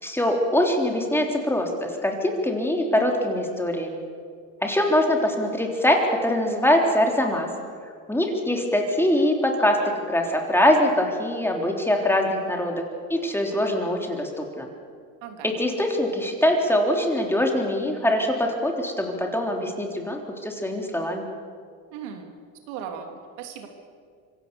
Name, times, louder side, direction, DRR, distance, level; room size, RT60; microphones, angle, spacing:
voice 1, 0.0-4.0 4.6-7.5 8.1-12.8 13.1-14.7 15.4-21.2, left 1 dB, 5° left, 1 dB, 3.5 m, -23 dB
voice 2, 21.9-22.3 22.7-23.7, right 7 dB, 85° right, 4 dB, 3.0 m, -37 dB
25.0 x 16.5 x 7.0 m, 2.1 s
supercardioid pair, 105°, 41 cm